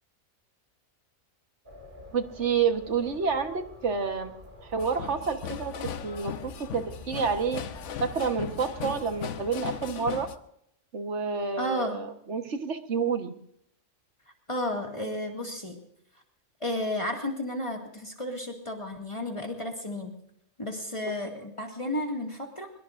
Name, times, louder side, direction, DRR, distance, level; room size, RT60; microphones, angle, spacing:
sound 1, 1.6-9.9, equal, 35° right, 2.4 m, -49 dB
voice 1, 2.1-4.3 4.6-7.6 8.0-10.3 10.9-13.3, right 5 dB, 55° right, 7 dB, 1.6 m, -29 dB
sound 2, 4.8-10.4, left 8 dB, 65° left, 1.1 m, -38 dB
voice 2, 11.6-12.0 14.5-15.8 16.6-20.1 20.6-22.7, left 1 dB, 20° left, 1 dB, 2.1 m, -32 dB
23.0 x 22.5 x 2.6 m, 0.75 s
omnidirectional pair, 1.4 m